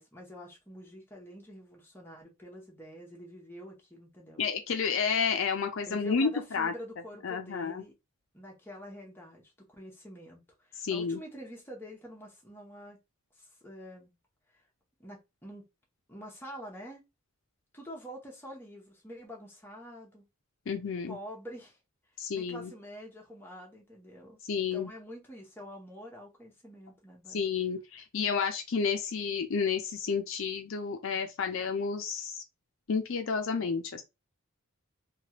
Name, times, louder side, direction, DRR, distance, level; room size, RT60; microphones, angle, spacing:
voice 1, 0.0-4.4 5.9-7.9 8.3-13.0 13.3-14.1 14.5-14.6 15.0-15.7 16.1-17.0 17.7-20.2 21.1-21.8 22.3-27.4, equal, 10° left, 0.8 m, -47 dB
voice 2, 4.4-6.7 7.2-7.8 10.8-11.2 20.7-21.2 22.2-22.7 24.5-24.9 27.3-32.4 32.9-34.0, left 5 dB, 60° left, 0.4 m, -30 dB
3.0 x 2.3 x 2.9 m
head